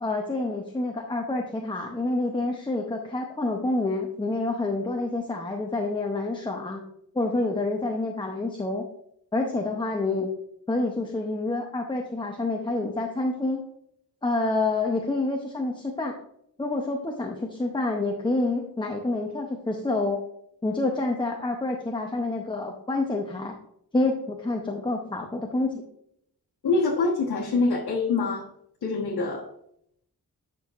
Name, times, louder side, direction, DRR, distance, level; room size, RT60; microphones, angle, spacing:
voice 1, 0.0-6.8 7.1-8.8 9.3-10.3 10.7-13.6 14.2-16.1 16.6-20.2 20.6-23.5 23.9-25.8, left 2 dB, 15° left, 1 dB, 0.6 m, -28 dB
voice 2, 26.6-28.5 28.8-29.5, left 3 dB, 85° left, -6 dB, 1.3 m, -25 dB
9.9 x 6.2 x 2.5 m, 0.72 s
wide cardioid pair, 160°, 37 cm